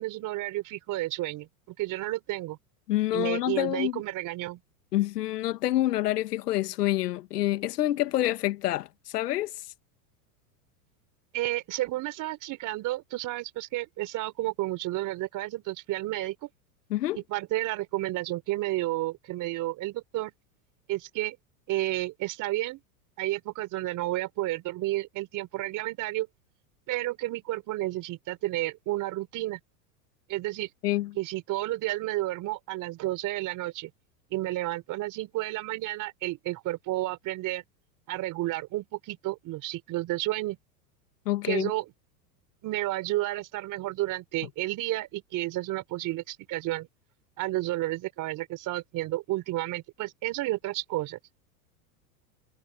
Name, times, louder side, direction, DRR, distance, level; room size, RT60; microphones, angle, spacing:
voice 1, 0.0-2.6 3.1-4.6 11.3-16.5 17.1-20.3 20.9-21.4 21.7-22.8 23.2-26.3 26.9-29.6 30.3-30.7 31.2-33.9 34.3-37.6 38.1-40.6 41.5-41.9 42.6-46.9 47.4-51.2, right 17 dB, 40° right, 4.0 m, -31 dB
voice 2, 2.9-4.0 4.9-9.7 16.9-17.2 30.8-31.1 41.2-41.7, left 15 dB, 80° left, 1.8 m, -27 dB
supercardioid pair, 125°, 46 cm